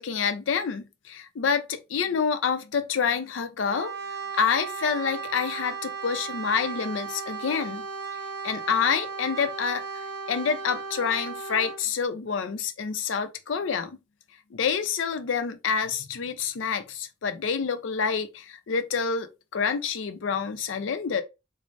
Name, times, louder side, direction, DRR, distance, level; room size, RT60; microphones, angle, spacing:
voice 1, 0.0-3.9 4.4-7.9 8.4-9.9 10.3-13.9 14.5-21.2, left 6 dB, 75° left, 0.5 m, -27 dB
Brass instrument, 3.7-11.9, right 5 dB, 60° right, 0.6 m, -36 dB
3.2 x 2.0 x 2.5 m
head